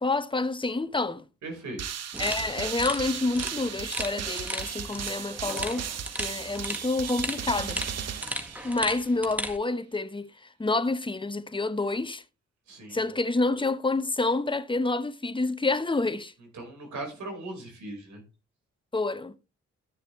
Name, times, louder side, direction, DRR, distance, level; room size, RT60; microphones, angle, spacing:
voice 1, 0.0-1.2 2.2-5.8 6.2-7.8 8.6-10.3 10.6-12.2 12.9-16.3 18.9-19.4, left 3 dB, 15° left, 1.0 m, -28 dB
voice 2, 1.4-1.8 12.7-13.0 16.5-18.2, right 2 dB, 75° right, 5.0 m, -38 dB
sound 1, 1.8-9.1, right 8 dB, 60° right, 0.9 m, -36 dB
sound 2, 2.1-9.6, equal, 5° right, 1.7 m, -36 dB
13.0 x 6.8 x 3.2 m
supercardioid pair, 55°, 29 cm